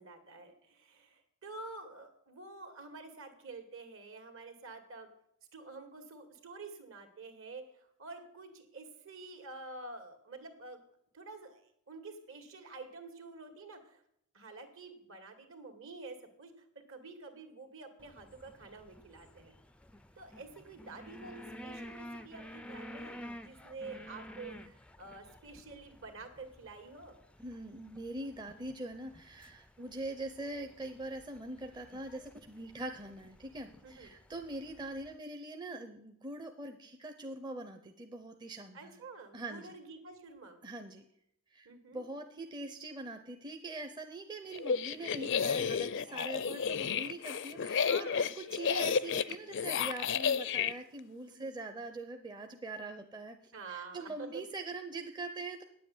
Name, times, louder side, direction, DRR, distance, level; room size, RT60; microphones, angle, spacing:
voice 1, 0.0-5.1 5.5-10.8 11.1-14.0 14.3-16.5 16.9-19.6 20.2-27.2 29.8-30.0 33.8-34.1 38.7-40.6 41.6-42.0 47.8-48.3 51.3-51.5 53.5-54.4, right 3 dB, 60° right, 7 dB, 2.2 m, -49 dB
sound 1, 18.0-35.1, equal, 5° left, 0.4 m, -52 dB
voice 2, 27.4-39.0 39.3-39.7 40.6-41.0 41.5-48.1 48.4-53.4 53.7-55.6, right 2 dB, 20° right, 5 dB, 0.7 m, -43 dB
sound 2, 44.5-50.7, left 6 dB, 55° left, 0.5 m, -32 dB
9.5 x 7.8 x 9.4 m, 0.73 s
head